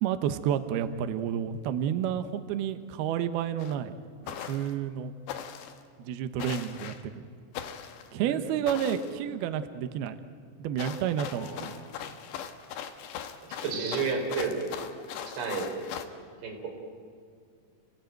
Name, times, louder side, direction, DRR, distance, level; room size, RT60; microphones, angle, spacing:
voice 1, 0.0-3.9 4.2-5.1 6.1-7.2 8.1-10.2 10.6-11.8, right 9 dB, 85° right, 10 dB, 2.2 m, -30 dB
sound 1, 3.6-3.7 4.3-4.7 5.3-5.8 6.4-7.0 7.5-8.1 8.7-9.1 10.8-16.1, left 9 dB, 70° left, 3.2 m, -39 dB
voice 2, 13.6-14.7 15.3-15.7 16.4-16.7, right 5 dB, 55° right, 1 dB, 6.0 m, -31 dB
29.5 x 18.0 x 9.1 m, 2.3 s
omnidirectional pair, 5.9 m